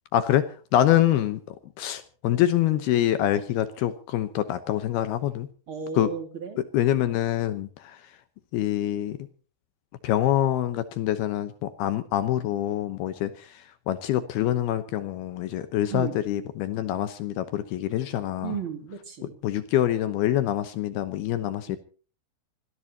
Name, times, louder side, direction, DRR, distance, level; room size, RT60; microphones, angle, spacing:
voice 1, 0.1-0.5 0.7-5.5 5.9-6.1 6.7-8.0 8.5-9.2 10.0-13.3 13.9-18.6 19.4-21.8, left 12 dB, 75° left, 11 dB, 2.4 m, -25 dB
voice 2, 5.7-6.6 15.9-16.2 18.4-19.4 21.7-21.8, right 7 dB, 35° right, 6 dB, 2.5 m, -34 dB
25.5 x 17.5 x 2.8 m, 0.38 s
omnidirectional pair, 5.6 m